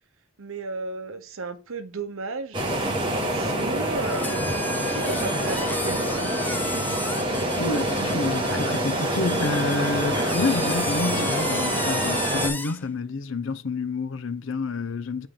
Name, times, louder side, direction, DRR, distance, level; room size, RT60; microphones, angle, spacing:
voice 1, 0.4-2.6 3.1-6.1, right 3 dB, 75° right, 0.9 m, -34 dB
sound 1, 2.5-12.5, right 1 dB, 25° right, 1.4 m, -26 dB
sound 2, 4.0-12.8, left 3 dB, 10° left, 0.3 m, -34 dB
voice 2, 7.6-15.3, left 3 dB, 65° left, 0.6 m, -28 dB
8.8 x 3.5 x 3.7 m
head